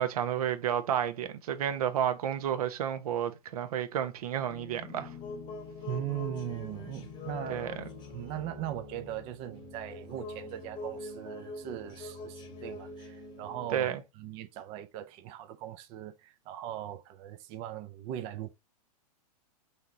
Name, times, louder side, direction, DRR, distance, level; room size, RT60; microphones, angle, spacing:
voice 1, 0.0-5.1 7.5-7.8 13.7-14.0, right 9 dB, 70° right, 1.1 m, -31 dB
sound 1, 4.5-13.8, left 3 dB, 25° left, 1.0 m, -44 dB
voice 2, 5.8-7.7 8.1-13.9 14.2-18.5, right 12 dB, 30° right, 0.4 m, -39 dB
5.6 x 3.3 x 2.6 m
hypercardioid pair, 145°, 20 cm